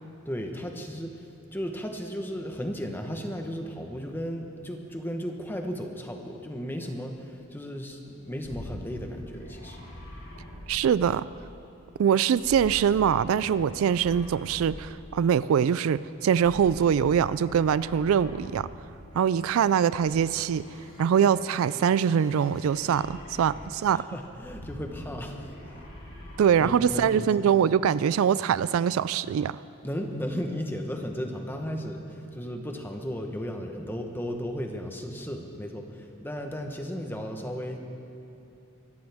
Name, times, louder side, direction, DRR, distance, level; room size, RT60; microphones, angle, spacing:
voice 1, 0.2-9.8 23.9-25.9 26.6-27.5 29.8-37.8, equal, 10° left, 3 dB, 1.0 m, -35 dB
sound 1, 8.4-11.4 12.3-15.0 16.3-18.9 19.9-23.9 24.3-26.8, left 1 dB, 70° left, 3.8 m, -44 dB
voice 2, 10.7-11.2 12.0-18.7 19.1-20.6 21.0-24.0 26.4-29.6, right 8 dB, 75° right, 17 dB, 0.3 m, -23 dB
23.5 x 14.0 x 3.5 m, 2.9 s
head